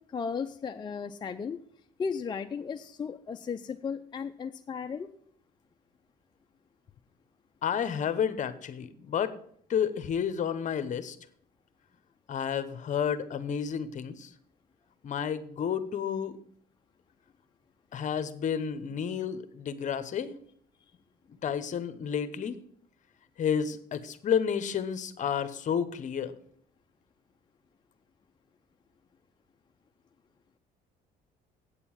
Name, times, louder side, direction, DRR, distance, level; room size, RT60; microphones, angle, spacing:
voice 1, 0.1-1.6 2.0-5.1, left 6 dB, 25° left, 5 dB, 0.5 m, -35 dB
voice 2, 7.6-9.3 9.7-11.2 12.3-14.3 15.0-16.4 17.9-20.3 21.4-22.6 23.4-26.3, left 8 dB, 45° left, 13 dB, 1.0 m, -31 dB
8.7 x 6.8 x 7.5 m, 0.64 s
cardioid pair, 110°, 17 cm